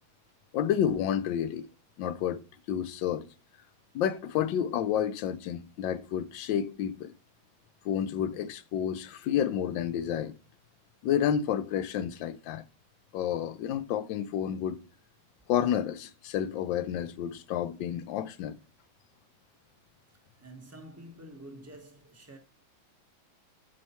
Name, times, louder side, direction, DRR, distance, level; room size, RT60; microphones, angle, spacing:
voice 1, 0.5-1.7 2.0-2.4 2.7-3.3 3.9-7.1 7.8-10.3 11.0-12.6 13.1-14.8 15.5-18.6, left 9 dB, 75° left, 1.3 m, -30 dB
voice 2, 20.1-22.4, right 1 dB, 15° right, 0.6 m, -48 dB
6.3 x 4.5 x 4.2 m
omnidirectional pair, 2.2 m